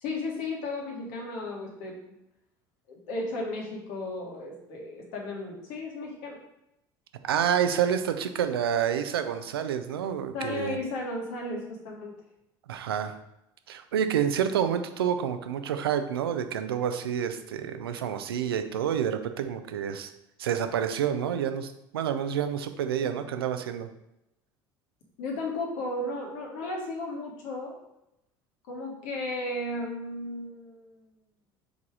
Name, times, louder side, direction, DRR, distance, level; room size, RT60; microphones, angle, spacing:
voice 1, 0.0-2.0 2.9-6.4 10.3-12.1 25.2-27.8 28.7-30.9, left 2 dB, 70° left, 0 dB, 1.8 m, -34 dB
voice 2, 7.2-10.8 12.7-13.1 13.7-20.1 20.4-23.9, right 8 dB, 85° right, 8 dB, 0.6 m, -28 dB
5.0 x 4.0 x 4.9 m, 0.85 s
hypercardioid pair, 70°, 12 cm